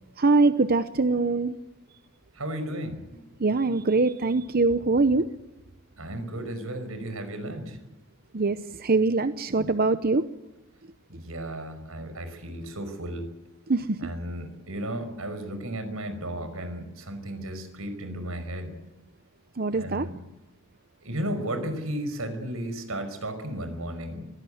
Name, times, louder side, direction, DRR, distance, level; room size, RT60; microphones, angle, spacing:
voice 1, 0.2-1.5 3.4-5.3 8.3-10.3 13.7-14.1 19.6-20.1, right 3 dB, 45° right, 11 dB, 0.8 m, -23 dB
voice 2, 2.3-3.2 6.0-7.8 11.1-13.3 14.0-18.7 19.7-20.2 21.0-24.3, right 1 dB, 80° right, 9 dB, 5.4 m, -34 dB
23.5 x 17.0 x 9.3 m, 1.0 s
head